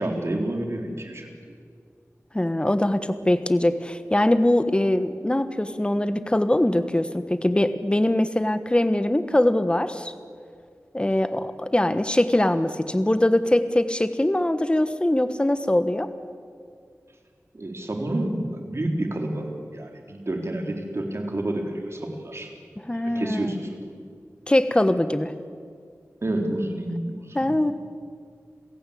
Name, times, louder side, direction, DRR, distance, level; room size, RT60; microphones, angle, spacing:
voice 1, 0.0-1.3 17.5-22.5 22.9-23.7 26.2-27.5, right 1 dB, 55° right, 3 dB, 3.6 m, -29 dB
voice 2, 2.3-10.1 10.9-16.1 22.9-23.5 24.5-25.3 27.3-27.7, left 1 dB, 20° left, 11 dB, 1.3 m, -22 dB
27.0 x 16.5 x 8.6 m, 2.1 s
wide cardioid pair, 60°, 5 cm